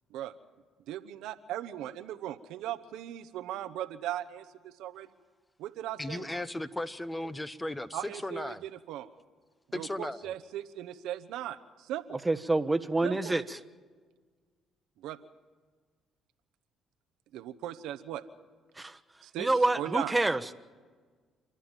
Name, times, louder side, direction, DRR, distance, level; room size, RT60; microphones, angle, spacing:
voice 1, 0.9-5.1 5.6-6.3 7.9-9.1 9.7-12.2 13.0-13.4 15.0-15.2 17.3-18.2 19.2-19.5 19.8-20.1, right 12 dB, 80° right, 0.9 m, -38 dB
voice 2, 6.0-8.6 9.7-10.3, left 1 dB, 15° left, 1.0 m, -36 dB
voice 3, 12.2-13.6 18.8-19.0 19.4-20.5, right 2 dB, 15° right, 1.2 m, -27 dB
29.0 x 11.5 x 9.0 m
supercardioid pair, 60°, 0 cm